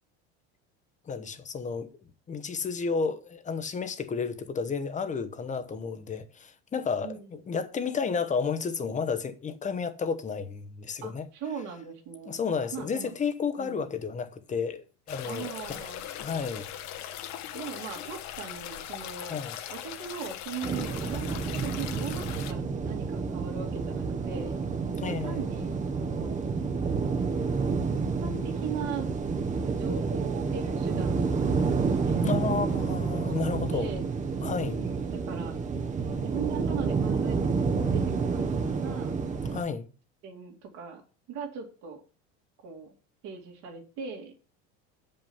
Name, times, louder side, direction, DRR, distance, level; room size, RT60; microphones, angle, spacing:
voice 1, 1.0-1.9 2.3-11.3 12.2-15.8 16.2-16.7 19.3-19.5 25.0-25.5 32.2-33.9 34.4-34.8 39.5-39.9, left 5 dB, 20° left, 1.0 m, -32 dB
voice 2, 11.0-12.4 12.7-13.1 13.6-13.9 15.3-16.1 17.5-19.4 19.7-24.5 25.0-25.7 26.0-26.4 28.2-29.1 29.6-31.8 32.1-32.7 33.1-34.0 34.7-35.5 36.0-39.2 40.2-41.0 41.3-42.0 42.6-42.9 43.2-44.4, right 6 dB, 55° right, 2.5 m, -39 dB
sound 1, 15.1-22.5, left 11 dB, 55° left, 1.3 m, -40 dB
sound 2, 20.6-39.6, right 5 dB, 20° right, 1.1 m, -29 dB
7.4 x 5.5 x 7.1 m
supercardioid pair, 130°, 33 cm